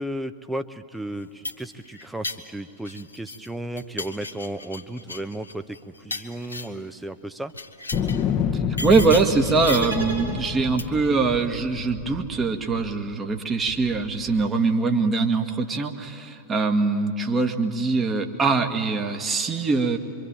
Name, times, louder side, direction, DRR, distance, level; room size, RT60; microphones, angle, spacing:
voice 1, 0.0-7.5, right 1 dB, 5° right, 9 dB, 1.0 m, -34 dB
sound 1, 1.1-3.5 3.8-6.9 7.5-8.3 8.8-10.0 10.8-11.1, left 3 dB, 80° left, 1.3 m, -36 dB
sound 2, 7.9-13.1 13.7-14.5, left 7 dB, 30° left, 1.2 m, -29 dB
voice 2, 8.8-20.0, right 4 dB, 20° right, 4 dB, 1.9 m, -23 dB
sound 3, 9.6-10.9, right 3 dB, 80° right, 7.1 m, -33 dB
25.5 x 25.0 x 9.0 m, 2.7 s
figure-of-eight pair, 90°, 0 cm